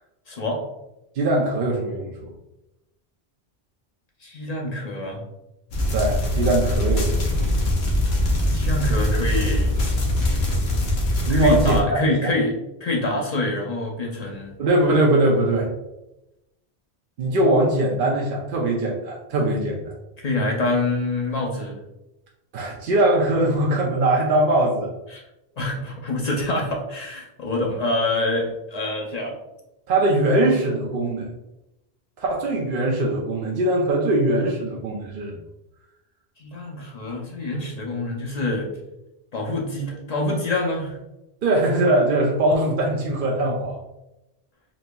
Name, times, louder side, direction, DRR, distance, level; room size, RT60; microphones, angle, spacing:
voice 1, 0.3-0.6 4.2-5.2 8.5-9.7 11.3-12.6 12.8-14.5 20.2-21.8 25.1-25.2 25.6-29.3 36.4-38.7 39.3-41.0, left 2 dB, 45° left, -1 dB, 0.6 m, -26 dB
voice 2, 1.2-2.3 5.9-7.5 11.3-12.3 14.6-15.7 17.2-19.9 22.5-24.9 29.9-31.3 32.2-35.4 41.4-43.8, right 1 dB, 60° right, -2 dB, 0.7 m, -21 dB
sound 1, 5.7-11.8, left 1 dB, 80° left, 1.0 m, -22 dB
4.0 x 2.7 x 2.2 m, 0.93 s
omnidirectional pair, 1.0 m